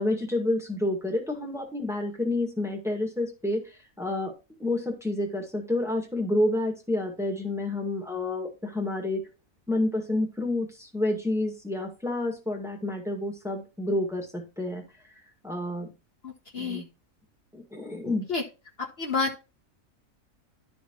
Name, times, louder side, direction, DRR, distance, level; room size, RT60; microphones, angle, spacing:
voice 1, 0.0-4.3 4.6-9.2 9.7-14.8 15.4-15.9 16.6-16.9 17.5-18.3, left 1 dB, ahead, 1 dB, 1.8 m, -29 dB
voice 2, 16.2-16.8 18.3-18.4 18.8-19.4, left 4 dB, 50° left, 1 dB, 1.2 m, -29 dB
12.0 x 4.3 x 3.1 m, 0.30 s
omnidirectional pair, 1.4 m